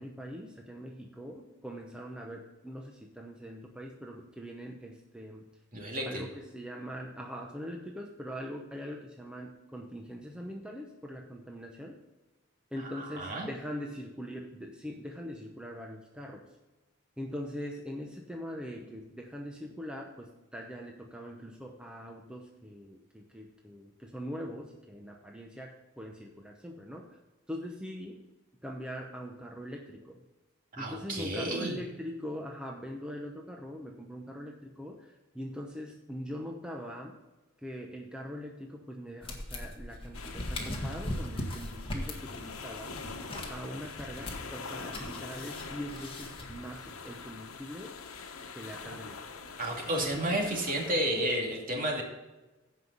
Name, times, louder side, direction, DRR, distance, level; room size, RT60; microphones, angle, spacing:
voice 1, 0.0-5.5 6.1-12.0 12.7-16.5 17.2-27.2 27.5-28.2 28.6-30.2 30.8-37.2 37.6-43.0 43.5-47.9 48.5-49.2 50.4-50.6, equal, 5° right, 0 dB, 0.8 m, -42 dB
voice 2, 5.7-6.2 12.9-13.5 30.7-31.8 49.6-52.0, right 1 dB, 40° right, 0 dB, 2.5 m, -31 dB
sound 1, 39.2-46.8, left 1 dB, 25° left, 1.8 m, -40 dB
sound 2, 40.1-51.0, left 4 dB, 90° left, 1.1 m, -44 dB
15.5 x 5.6 x 4.0 m, 1.1 s
head